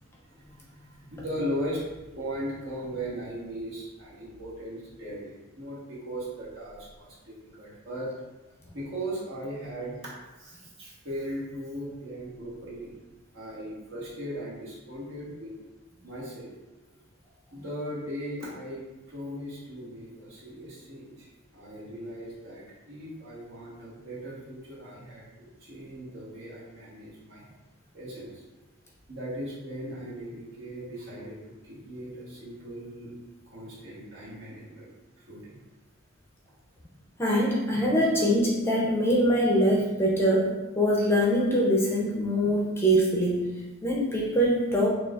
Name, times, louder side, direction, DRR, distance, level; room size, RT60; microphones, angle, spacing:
voice 1, 0.2-8.1 8.7-13.0 13.3-15.5 16.0-16.5 17.5-21.3 21.5-27.4 27.9-28.4 29.1-33.1 33.5-34.9 35.2-35.6, equal, 65° right, -7 dB, 1.4 m, -38 dB
voice 2, 37.2-40.5 40.8-43.5 43.8-44.9, equal, 10° left, -4 dB, 0.6 m, -23 dB
6.6 x 2.4 x 2.4 m, 1.1 s
head